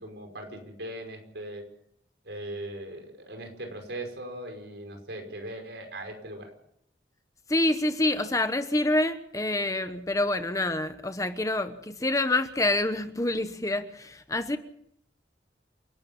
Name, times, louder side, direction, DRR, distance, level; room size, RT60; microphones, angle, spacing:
voice 1, 0.0-1.6 2.2-6.5, right 1 dB, 70° right, 4 dB, 5.4 m, -39 dB
voice 2, 7.5-14.6, left 2 dB, 20° left, 10 dB, 1.0 m, -27 dB
28.5 x 12.5 x 7.3 m, 0.71 s
head